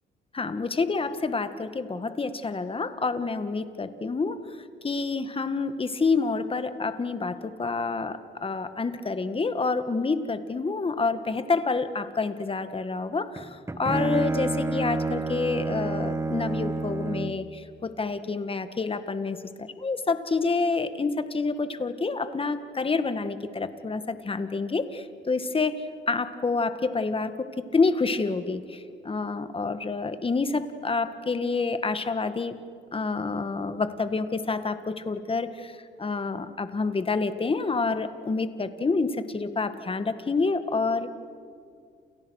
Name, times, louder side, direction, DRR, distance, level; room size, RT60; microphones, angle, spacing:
voice 1, 0.3-4.6 4.8-32.6 32.9-41.1, left 4 dB, 25° left, 10 dB, 1.8 m, -28 dB
Bowed string instrument, 13.4-17.5, right 2 dB, 15° right, 1.4 m, -29 dB
29.5 x 29.0 x 6.5 m, 2.3 s
cardioid pair, 90°, 20 cm